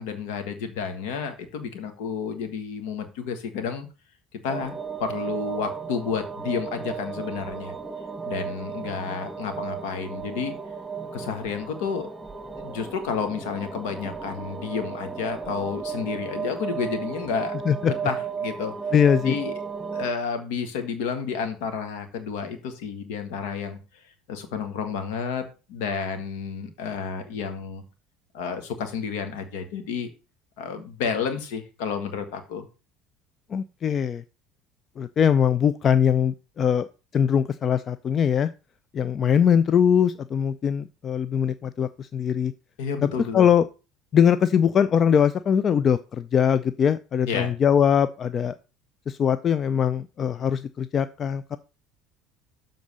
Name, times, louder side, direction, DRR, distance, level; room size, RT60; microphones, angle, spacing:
voice 1, 0.0-3.9 4.3-4.7 5.0-7.8 8.2-10.5 11.1-12.1 12.6-17.6 18.0-18.7 19.2-19.5 19.9-23.8 24.3-27.8 28.3-30.1 30.6-32.7 42.8-43.5 47.2-47.5, left 6 dB, 75° left, 7 dB, 1.6 m, -31 dB
sound 1, 4.5-20.1, right 6 dB, 15° right, 1.5 m, -34 dB
voice 2, 18.9-19.4 33.5-34.2 35.0-36.9 37.1-38.5 38.9-42.5 43.0-43.6 44.1-48.5 49.1-51.6, left 8 dB, 45° left, 14 dB, 0.4 m, -21 dB
7.2 x 3.9 x 6.4 m, 0.32 s
hypercardioid pair, 75°, 0 cm